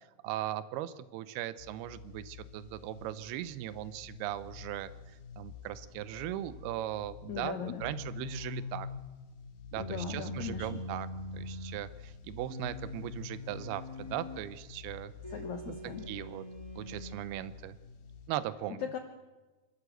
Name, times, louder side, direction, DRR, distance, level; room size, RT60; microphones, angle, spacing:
voice 1, 0.2-4.9 5.4-8.9 9.7-11.1 11.3-15.1 15.7-16.4 16.8-17.8 18.3-18.8, right 13 dB, 85° right, 15 dB, 2.7 m, -38 dB
sound 1, 1.6-18.3, left 6 dB, 80° left, 3.5 m, -50 dB
voice 2, 7.3-7.8 9.8-10.8 15.3-16.1 18.8-19.0, left 9 dB, 65° left, 5 dB, 2.0 m, -39 dB
sound 2, 7.8-9.1 9.8-11.9 12.5-14.5 15.2-17.2, left 2 dB, 15° left, 1.1 m, -42 dB
26.0 x 13.0 x 8.0 m, 1.2 s
omnidirectional pair, 4.4 m